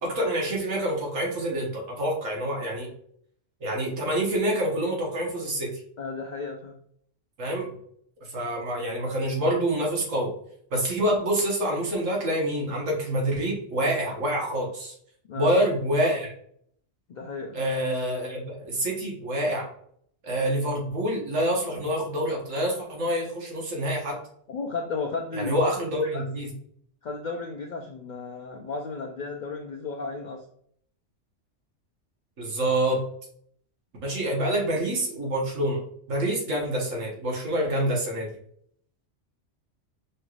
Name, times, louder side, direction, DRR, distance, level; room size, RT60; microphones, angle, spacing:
voice 1, 0.0-2.9 3.6-5.7 7.4-7.7 8.2-10.3 10.7-14.9 15.3-16.3 17.5-19.6 20.2-24.2 25.3-26.5 32.4-33.0 34.0-35.8 36.1-38.3, right 1 dB, 85° right, -2 dB, 1.6 m, -27 dB
voice 2, 6.0-6.8 15.3-15.5 17.1-17.6 24.5-25.6 26.0-26.2 27.0-30.4, left 4 dB, 70° left, 3 dB, 0.4 m, -34 dB
5.4 x 3.1 x 2.4 m, 0.66 s
omnidirectional pair, 1.3 m